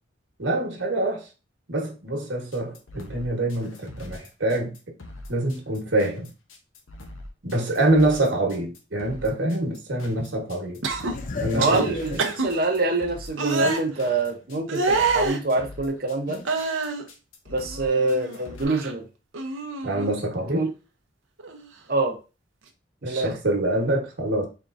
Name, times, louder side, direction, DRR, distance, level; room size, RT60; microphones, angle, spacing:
voice 1, 0.4-1.3 1.7-4.8 5.3-6.3 7.4-10.8 11.4-11.8 12.1-12.2 19.8-20.7 23.0-24.5, right 1 dB, 70° right, 1.3 m, -25 dB
sound 1, 2.5-18.6, left 1 dB, 85° left, 0.9 m, -43 dB
sound 2, 10.8-11.1 11.6-11.8 12.2-12.5 13.4-13.8 14.7-15.4 16.4-17.0 17.5-18.4 18.6-18.9 19.3-20.1 21.4-21.6, right 3 dB, 85° right, 0.8 m, -26 dB
sound 3, 11.0-14.2 14.6-14.7 16.3-16.6, left 4 dB, 40° left, 0.5 m, -35 dB
voice 2, 11.5-16.4 17.5-19.1 20.5-20.7 21.9-22.2 23.0-23.3, right 3 dB, 50° right, 0.8 m, -25 dB
4.5 x 3.6 x 2.6 m
head